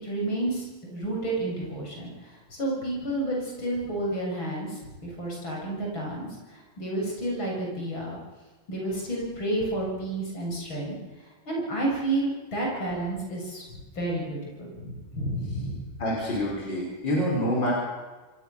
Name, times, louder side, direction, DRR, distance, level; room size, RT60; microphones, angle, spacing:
voice 1, 0.0-8.2 8.7-11.0 11.5-15.8, right 1 dB, 80° left, -2 dB, 8.1 m, -31 dB
voice 2, 16.0-17.7, equal, 65° left, -3 dB, 6.4 m, -26 dB
27.0 x 22.0 x 7.0 m, 1.3 s
omnidirectional pair, 2.1 m